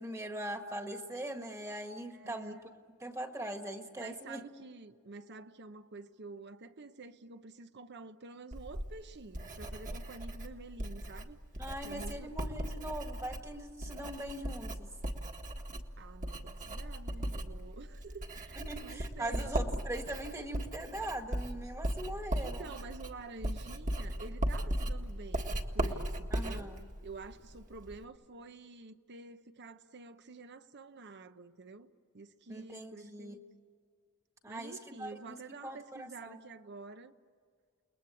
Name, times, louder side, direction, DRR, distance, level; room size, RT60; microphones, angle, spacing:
voice 1, 0.0-2.6 3.0-4.4 11.6-14.9 18.6-22.7 26.3-26.8 32.5-33.4 34.4-35.4 35.6-36.4, right 1 dB, 15° right, 1.6 m, -41 dB
voice 2, 2.1-2.7 4.0-11.4 11.8-12.3 16.0-19.5 22.4-26.7 27.0-33.4 34.5-37.1, right 3 dB, 50° right, 0.9 m, -49 dB
Writing, 8.5-28.0, right 1 dB, 35° right, 1.8 m, -38 dB
29.5 x 21.0 x 8.5 m
head